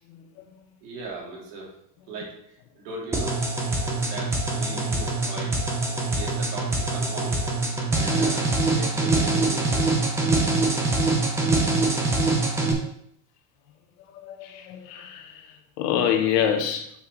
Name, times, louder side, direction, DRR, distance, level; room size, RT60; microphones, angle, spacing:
voice 1, 0.1-0.4 4.7-4.8 14.1-16.9, left 9 dB, 80° left, 5 dB, 1.3 m, -27 dB
voice 2, 0.8-1.7 2.1-2.3 2.7-3.4 3.8-5.5 6.1-7.4 7.9-10.1, right 2 dB, 75° right, -3 dB, 3.0 m, -38 dB
sound 1, 3.1-12.7, right 2 dB, 5° right, 0.4 m, -24 dB
7.1 x 6.1 x 3.3 m, 0.69 s
cardioid pair, 170°, 47 cm